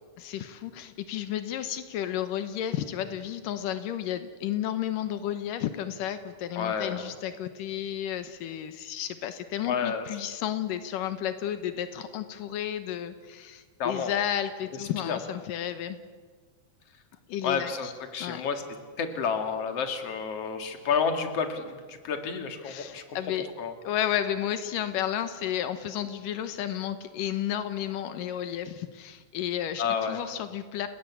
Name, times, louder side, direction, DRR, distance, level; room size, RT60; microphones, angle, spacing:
voice 1, 0.2-16.0 17.3-17.9 18.2-18.4 22.6-23.5 23.8-30.9, left 10 dB, 85° left, 10 dB, 2.7 m, -32 dB
voice 2, 6.6-7.0 9.6-10.1 13.8-14.1 14.8-15.2 17.4-18.6 19.0-23.2 23.6-23.7 29.8-30.2, left 6 dB, 50° left, 6 dB, 3.0 m, -30 dB
30.0 x 19.0 x 8.3 m, 1.5 s
omnidirectional pair, 3.8 m